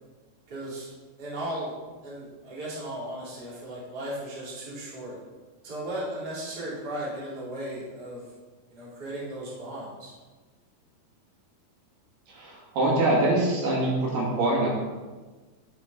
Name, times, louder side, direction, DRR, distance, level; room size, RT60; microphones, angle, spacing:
voice 1, 0.5-0.9 1.2-1.8 2.0-5.2 5.6-8.2 8.7-10.1, right 1 dB, 25° right, -8 dB, 3.1 m, -36 dB
voice 2, 12.3-14.7, right 2 dB, 90° right, -4 dB, 4.4 m, -24 dB
9.1 x 7.9 x 4.0 m, 1.3 s
omnidirectional pair, 4.4 m